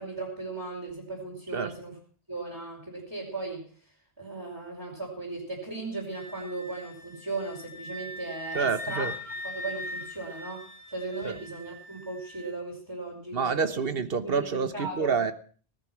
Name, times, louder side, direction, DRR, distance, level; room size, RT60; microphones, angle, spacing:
voice 1, 0.0-2.0 2.3-3.7 4.2-9.1 9.4-13.8 14.2-14.4 14.7-15.1, right 3 dB, 25° right, -6 dB, 5.3 m, -37 dB
Wind instrument woodwind instrument, 6.1-12.5, left 1 dB, 20° left, 4.9 m, -40 dB
voice 2, 8.5-9.1 11.2-11.4 13.3-15.3, right 5 dB, 60° right, 12 dB, 1.3 m, -28 dB
19.0 x 10.5 x 6.0 m, 0.43 s
omnidirectional pair, 1.1 m